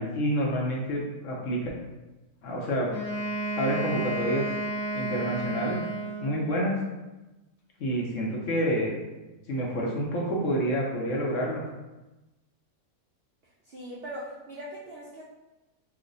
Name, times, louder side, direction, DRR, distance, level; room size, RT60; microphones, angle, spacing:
voice 1, 0.0-1.6 2.4-2.9 3.6-4.5 4.9-5.8 6.2-6.7 7.8-8.9 9.5-11.6, equal, 65° left, -2 dB, 0.9 m, -28 dB
Wind instrument woodwind instrument, 2.9-6.6, right 2 dB, 90° left, 1.2 m, -32 dB
voice 2, 13.6-15.2, equal, 75° right, -5 dB, 0.5 m, -40 dB
3.0 x 2.1 x 3.8 m, 1.1 s
omnidirectional pair, 1.6 m